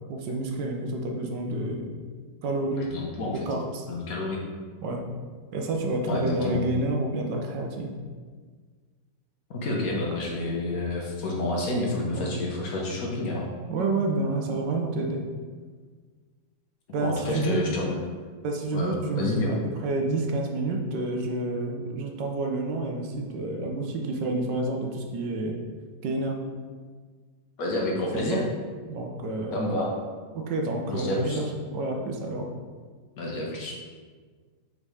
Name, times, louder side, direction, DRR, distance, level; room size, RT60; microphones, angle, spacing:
voice 1, 0.1-1.9 2.4-2.9 3.5-3.8 4.8-5.0 5.5-7.9 12.1-12.3 13.7-15.2 16.9-17.7 18.4-19.6 19.8-25.5 26.0-26.4 28.1-28.4 28.9-29.6 30.3-31.5 31.7-32.5, right 2 dB, 75° right, 2 dB, 1.4 m, -29 dB
voice 2, 2.8-3.5 3.9-4.4 6.1-6.6 9.5-13.5 17.0-17.9 18.7-19.5 27.6-28.4 29.5-29.9 30.9-31.4 33.2-33.8, left 2 dB, 55° left, -2 dB, 1.3 m, -29 dB
5.4 x 4.0 x 4.8 m, 1.5 s
omnidirectional pair, 2.0 m